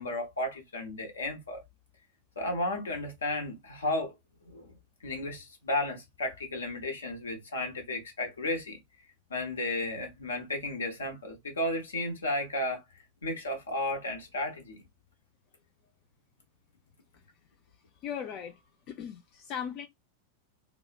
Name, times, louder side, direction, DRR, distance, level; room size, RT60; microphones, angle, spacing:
voice 1, 0.0-1.6 2.4-4.1 4.5-4.7 5.0-8.8 9.3-12.8 13.2-14.8, left 1 dB, 70° left, 0.9 m, -33 dB
voice 2, 17.9-19.9, left 8 dB, 40° left, 0.3 m, -39 dB
2.9 x 2.1 x 2.3 m
figure-of-eight pair, 90°, 0 cm